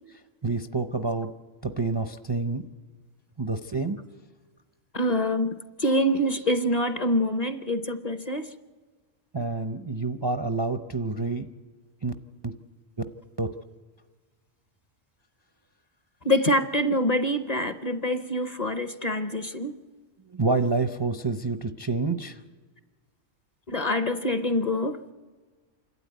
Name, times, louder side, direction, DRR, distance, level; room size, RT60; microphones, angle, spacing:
voice 1, 0.4-1.3 1.6-2.6 3.4-4.0 9.3-11.5 12.0-12.1 12.4-12.5 13.4-13.5 20.3-22.4, right 3 dB, 30° right, 9 dB, 0.5 m, -28 dB
voice 2, 4.9-5.5 5.8-8.5 16.2-19.8 23.7-25.0, left 1 dB, 40° left, 10 dB, 0.7 m, -25 dB
27.5 x 12.5 x 9.3 m, 1.4 s
omnidirectional pair, 1.3 m